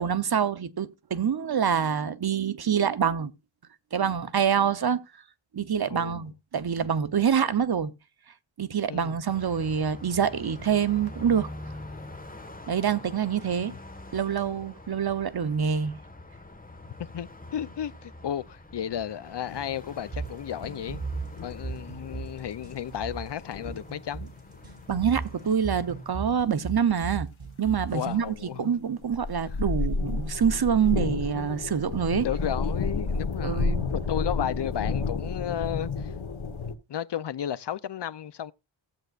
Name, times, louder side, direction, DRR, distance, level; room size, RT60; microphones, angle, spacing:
voice 1, 0.0-3.3 3.9-5.0 5.5-7.9 8.6-11.5 12.7-13.7 14.1-16.0 24.9-27.3 27.6-32.3 33.4-33.9, right 7 dB, 50° right, 0.8 m, -26 dB
voice 2, 5.9-6.3 8.9-9.2 13.6-13.8 16.8-21.0 21.4-24.3 24.9-25.0 27.9-28.8 29.5-29.6 32.2-36.1 36.9-38.5, left 10 dB, 60° left, 0.6 m, -34 dB
Car passing by, 9.3-26.5, left 1 dB, 15° left, 1.5 m, -45 dB
sound 1, 19.5-22.8 23.1-25.6 28.2-28.3 29.1-36.7, left 4 dB, 80° left, 1.4 m, -31 dB
sound 2, 20.1-28.1, right 4 dB, 65° right, 4.4 m, -37 dB
16.5 x 7.9 x 2.4 m
wide cardioid pair, 65°, 47 cm